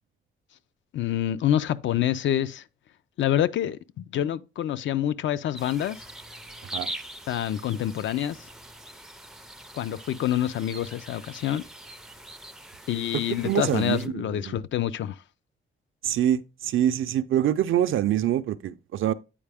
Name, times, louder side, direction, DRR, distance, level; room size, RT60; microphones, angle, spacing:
voice 1, 0.9-2.6 3.2-6.0 7.3-8.4 9.7-11.6 12.9-15.2, left 11 dB, 65° left, 0.4 m, -27 dB
sound 1, 5.5-14.1, right 1 dB, ahead, 0.3 m, -42 dB
voice 2, 13.4-14.6 16.0-19.1, right 11 dB, 70° right, 0.4 m, -25 dB
8.5 x 4.8 x 3.4 m
wide cardioid pair, 175°, 21 cm